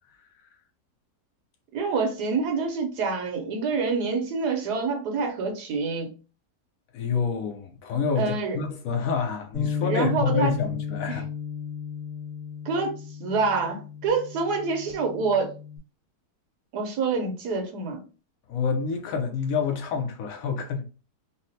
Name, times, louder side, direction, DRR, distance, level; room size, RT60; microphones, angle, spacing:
voice 1, 1.7-6.1 8.2-8.6 9.9-10.5 11.1-11.2 12.6-12.9 13.2-15.5 16.7-18.0, right 4 dB, 85° right, 1.4 m, -26 dB
voice 2, 6.9-11.3 18.5-20.8, left 5 dB, 70° left, 1.0 m, -27 dB
Bass guitar, 9.5-15.8, left 7 dB, 35° left, 1.2 m, -34 dB
4.0 x 2.0 x 2.7 m
omnidirectional pair, 1.7 m